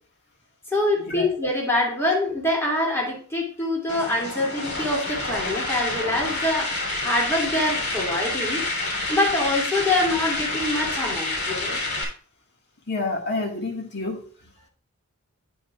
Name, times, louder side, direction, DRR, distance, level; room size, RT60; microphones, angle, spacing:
voice 1, 0.7-8.6 9.1-11.8, left 1 dB, 10° left, 2.5 m, -25 dB
sound 1, 3.9-12.0, left 2 dB, 80° left, 3.3 m, -28 dB
voice 2, 12.9-14.3, left 2 dB, 50° left, 1.8 m, -28 dB
9.0 x 8.6 x 2.4 m
head